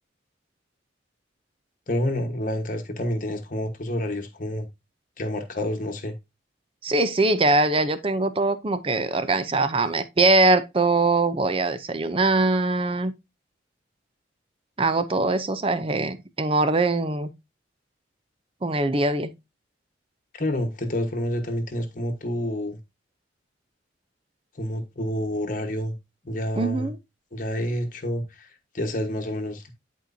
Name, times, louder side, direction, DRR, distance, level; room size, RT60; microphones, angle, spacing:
voice 1, 1.9-4.7 5.2-6.1 20.3-22.8 24.6-25.9 26.2-26.9 27.3-29.8, left 1 dB, 45° left, 1.3 m, -28 dB
voice 2, 6.8-13.1 14.8-17.3 18.6-19.3 26.6-27.0, right 2 dB, 30° right, 0.6 m, -22 dB
10.5 x 4.5 x 2.7 m
head